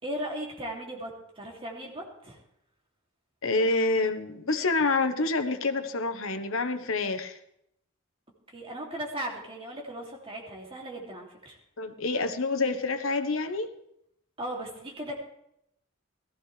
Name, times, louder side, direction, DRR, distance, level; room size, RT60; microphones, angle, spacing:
voice 1, 0.0-2.4 8.5-11.6 14.4-15.2, right 1 dB, 25° right, -1 dB, 2.8 m, -37 dB
voice 2, 3.4-7.4 11.8-13.7, left 3 dB, 80° left, 9 dB, 1.2 m, -27 dB
17.5 x 15.0 x 3.4 m, 0.77 s
head